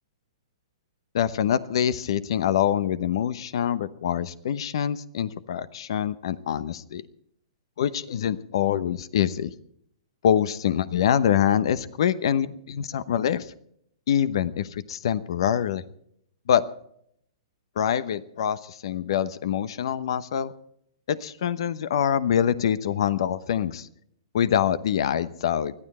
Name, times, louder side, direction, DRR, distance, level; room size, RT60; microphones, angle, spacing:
voice 1, 1.1-7.0 7.8-9.5 10.2-13.5 14.1-15.8 16.5-16.7 17.8-20.5 21.1-23.9 24.3-25.7, left 9 dB, 65° left, 15 dB, 0.9 m, -25 dB
20.5 x 13.0 x 4.3 m, 0.69 s
hypercardioid pair, 130°, 3 cm